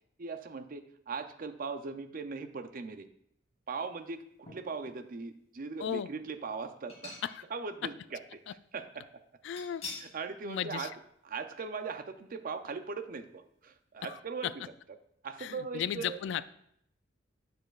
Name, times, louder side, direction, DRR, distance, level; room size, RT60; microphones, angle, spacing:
voice 1, 0.2-3.1 3.7-7.1 7.5-9.1 10.0-10.9 11.2-14.6 15.2-16.2, right 4 dB, 50° right, 9 dB, 0.5 m, -39 dB
sound 1, 4.4-5.0 5.6-5.7 6.9-7.6 8.0-8.1 9.6-10.2 10.6-10.7 11.1-11.2, left 3 dB, 35° left, 2.0 m, -46 dB
voice 2, 9.4-9.9 10.4-10.9 14.0-14.5 15.4-16.4, left 9 dB, 70° left, 16 dB, 0.3 m, -35 dB
9.9 x 6.6 x 2.4 m, 0.72 s
head